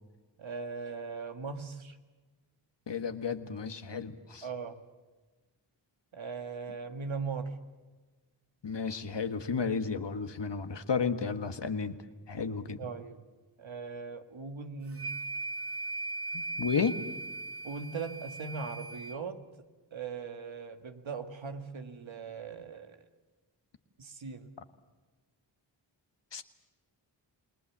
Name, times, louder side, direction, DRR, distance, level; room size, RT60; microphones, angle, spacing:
voice 1, 0.4-2.0 4.4-4.8 6.1-7.6 12.8-13.2 13.6-15.1 17.6-19.4 19.9-23.0 24.0-24.5, right 5 dB, 80° right, 6 dB, 1.9 m, -39 dB
voice 2, 2.9-4.5 8.6-12.0 12.3-12.8 16.3-17.0 26.3-26.4, left 5 dB, 65° left, 8 dB, 1.6 m, -32 dB
sound 1, 14.9-19.2, right 2 dB, 30° right, 1.0 m, -38 dB
29.0 x 19.5 x 7.4 m, 1.3 s
cardioid pair, 45°, 46 cm